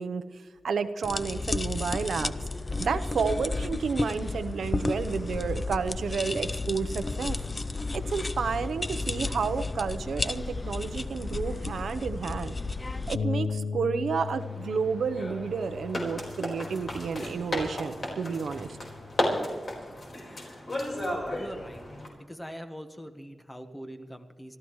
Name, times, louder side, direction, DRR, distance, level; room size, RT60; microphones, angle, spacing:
voice 1, 0.0-2.3 2.8-7.4 7.9-12.6 13.1-18.7, right 5 dB, 80° right, 10 dB, 0.9 m, -31 dB
sound 1, 1.0-13.2, left 3 dB, 25° left, 0.5 m, -32 dB
sound 2, 13.1-19.4, left 5 dB, 90° left, 0.6 m, -37 dB
sound 3, 14.3-22.1, left 1 dB, 45° left, 4.5 m, -34 dB
voice 2, 21.3-21.8 22.2-24.6, equal, 10° left, 7 dB, 1.4 m, -42 dB
25.5 x 14.0 x 3.2 m, 1.5 s
wide cardioid pair, 130°, 0 cm